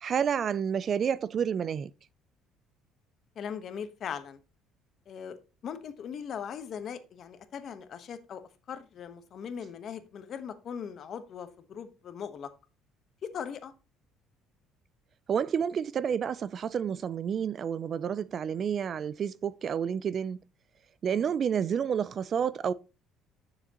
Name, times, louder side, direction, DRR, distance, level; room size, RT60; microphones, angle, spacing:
voice 1, 0.0-1.9 15.3-20.4 21.0-22.7, right 7 dB, 35° right, 0.3 m, -29 dB
voice 2, 3.4-4.4 5.1-5.4 5.6-8.4 8.7-12.5 13.2-13.7 21.1-21.3, left 7 dB, 45° left, 1.0 m, -39 dB
9.8 x 6.8 x 2.9 m
cardioid pair, 140°, 0 cm